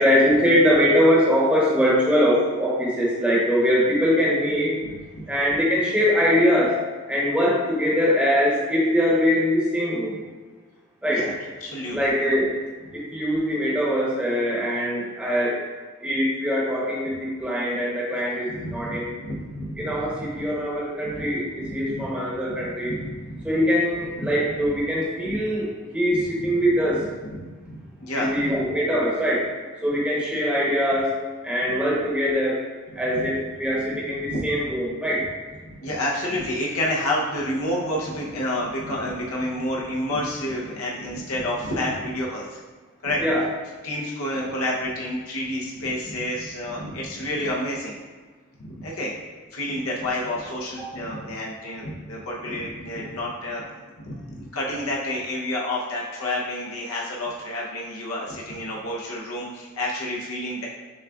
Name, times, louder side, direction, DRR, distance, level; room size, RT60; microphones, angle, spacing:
voice 1, 0.0-4.8 5.3-6.8 7.1-10.2 11.0-11.3 11.9-12.6 12.9-15.6 16.0-19.1 19.8-22.9 23.4-25.7 25.9-27.0 28.1-29.5 29.8-31.1 31.4-32.6 33.0-35.3 43.2-43.4, equal, 5° right, -6 dB, 0.9 m, -22 dB
voice 2, 11.6-12.0 18.5-20.3 21.0-21.3 21.6-22.1 22.5-22.6 22.9-23.6 25.2-25.4 26.1-26.5 27.2-27.4 27.6-28.5 34.1-34.4 35.7-42.5 43.0-43.2 43.8-48.0 48.7-49.1 49.5-53.6 54.0-60.7, left 1 dB, 75° left, -4 dB, 0.8 m, -29 dB
6.3 x 3.5 x 2.4 m, 1.4 s
head